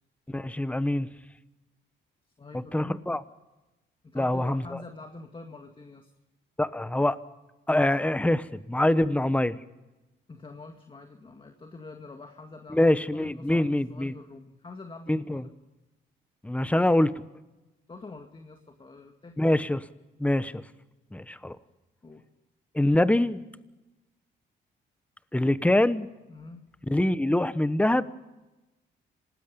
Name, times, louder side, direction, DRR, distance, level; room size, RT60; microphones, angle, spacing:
voice 1, 0.3-1.1 2.5-3.2 4.1-4.6 6.6-7.2 7.7-9.6 12.7-14.1 15.1-15.4 16.4-17.2 19.4-19.8 20.2-20.6 21.1-21.6 22.7-23.4 25.3-26.1 26.9-28.0, left 1 dB, 5° left, 14 dB, 1.0 m, -24 dB
voice 2, 2.4-3.0 4.0-6.1 10.3-15.5 17.9-19.6 22.0-22.3 26.3-26.7, left 3 dB, 25° left, 5 dB, 2.0 m, -46 dB
26.5 x 19.0 x 5.4 m, 1.1 s
cardioid pair, 90°, 20 cm